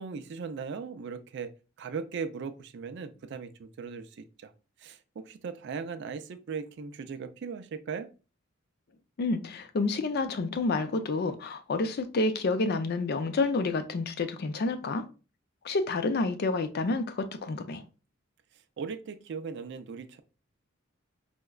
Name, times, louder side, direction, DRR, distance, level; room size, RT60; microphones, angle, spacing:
voice 1, 0.0-1.5 1.8-4.5 4.8-8.1 18.8-20.2, right 5 dB, 60° right, 0.4 m, -38 dB
voice 2, 9.2-15.0 15.6-17.8, left 3 dB, 50° left, 0.4 m, -29 dB
4.6 x 2.1 x 2.2 m
head